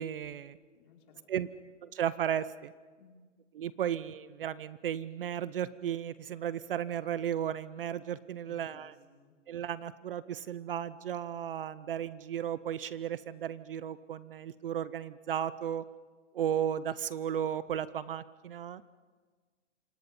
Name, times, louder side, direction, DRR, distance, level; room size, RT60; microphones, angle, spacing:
voice 1, 0.0-0.6 1.3-1.5 1.8-2.7 3.5-8.9 9.5-15.8 16.3-18.8, right 9 dB, 45° right, 16 dB, 0.7 m, -34 dB
voice 2, 0.7-1.2 1.5-1.6 3.0-3.2 3.8-3.9 8.4-9.3, left 5 dB, 40° left, 0 dB, 5.1 m, -60 dB
28.0 x 26.5 x 5.4 m, 1.5 s
hypercardioid pair, 165°, 37 cm